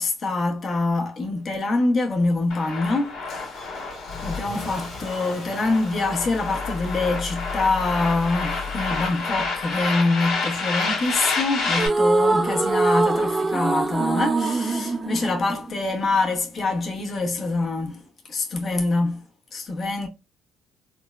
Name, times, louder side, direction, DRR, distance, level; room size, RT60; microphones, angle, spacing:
voice 1, 0.0-19.2 19.5-20.1, left 3 dB, 40° left, 0.8 m, -25 dB
Car / Engine starting, 2.0-10.2, left 5 dB, 60° left, 1.2 m, -37 dB
sound 1, 2.5-11.9, left 3 dB, 75° left, 1.3 m, -29 dB
sound 2, 11.7-16.1, right 3 dB, 20° right, 0.3 m, -23 dB
3.4 x 2.1 x 2.3 m
cardioid pair, 90°, 0 cm